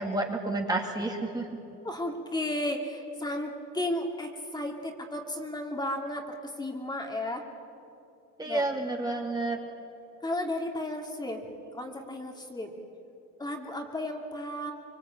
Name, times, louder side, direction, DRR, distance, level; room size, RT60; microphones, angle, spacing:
voice 1, 0.0-1.5 8.4-9.6, right 2 dB, 15° right, 1 dB, 2.4 m, -30 dB
voice 2, 1.8-7.4 8.4-8.7 10.2-11.4 11.7-12.7 13.4-14.7, left 1 dB, 15° left, 2 dB, 2.6 m, -34 dB
25.0 x 23.0 x 8.9 m, 2.7 s
cardioid pair, 125°, 30 cm